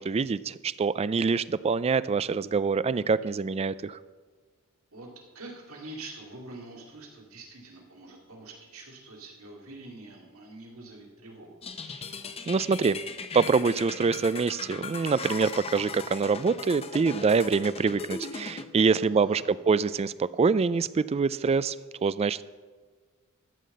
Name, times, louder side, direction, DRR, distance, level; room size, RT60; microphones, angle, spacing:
voice 1, 0.0-4.0 12.5-13.0 13.3-21.8 22.0-22.4, right 5 dB, 30° right, 17 dB, 0.3 m, -25 dB
voice 2, 5.3-11.6 18.8-19.4, right 2 dB, 70° right, 0 dB, 2.4 m, -45 dB
sound 1, 11.6-18.6, left 5 dB, 25° left, 0.7 m, -39 dB
13.5 x 5.7 x 7.8 m, 1.4 s
head